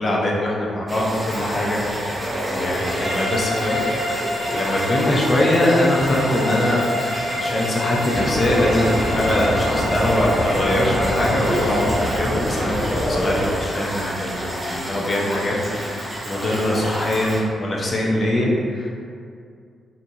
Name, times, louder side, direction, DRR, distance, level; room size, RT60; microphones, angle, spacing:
voice 1, 0.0-3.8 4.1-6.8 7.3-12.8 13.0-18.9, left 1 dB, 45° left, -4 dB, 0.6 m, -22 dB
sound 1, 0.9-17.4, equal, 25° right, 1.2 m, -29 dB
sound 2, 2.8-12.2, left 1 dB, 85° right, 0.9 m, -28 dB
sound 3, 8.1-13.6, equal, 10° left, 0.9 m, -25 dB
2.8 x 2.4 x 2.6 m, 2.3 s
supercardioid pair, 55°, 0 cm